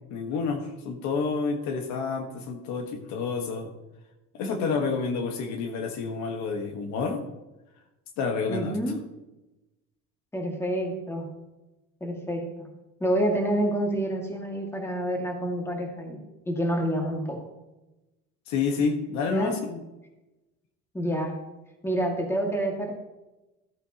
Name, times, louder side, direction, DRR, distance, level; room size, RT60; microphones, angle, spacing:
voice 1, 0.1-3.7 4.3-7.2 8.2-8.8 18.5-19.8, left 4 dB, 70° left, 5 dB, 1.5 m, -29 dB
voice 2, 8.5-9.0 10.3-11.3 12.0-12.7 13.0-17.4 19.3-19.5 20.9-21.3 21.8-22.9, right 1 dB, 10° left, 1 dB, 2.1 m, -28 dB
14.5 x 8.7 x 3.0 m, 1.0 s
cardioid pair, 125°, 29 cm